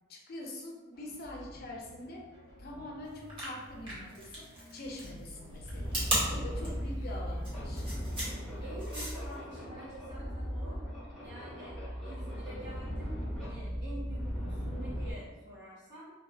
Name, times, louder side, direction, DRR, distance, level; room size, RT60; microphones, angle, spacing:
voice 1, 0.1-2.3 2.6-6.0 6.3-7.9, left 1 dB, 45° left, -1 dB, 0.5 m, -44 dB
sound 1, 0.9-7.6, equal, 90° right, 0.8 m, -52 dB
sound 2, 3.2-9.3, equal, 25° right, 0.8 m, -36 dB
sound 3, 5.4-15.1, equal, ahead, 1.0 m, -38 dB
voice 2, 8.6-10.8 11.2-16.1, right 1 dB, 50° right, -9 dB, 0.5 m, -47 dB
2.3 x 2.0 x 2.6 m, 1.2 s
head